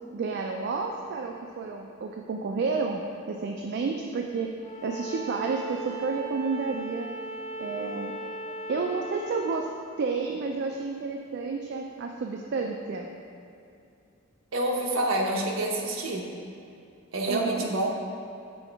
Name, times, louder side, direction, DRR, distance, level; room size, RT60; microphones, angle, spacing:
voice 1, 0.1-3.0 3.3-4.5 4.8-7.1 7.6-8.1 8.7-9.7 10.0-13.1 17.3-17.8, right 4 dB, 55° right, 2 dB, 0.3 m, -30 dB
Bowed string instrument, 4.6-9.7, right 1 dB, 35° left, 0.5 m, -38 dB
voice 2, 14.5-16.3 17.1-17.9, right 1 dB, 70° right, 0 dB, 0.8 m, -27 dB
6.3 x 3.8 x 4.5 m, 2.5 s
head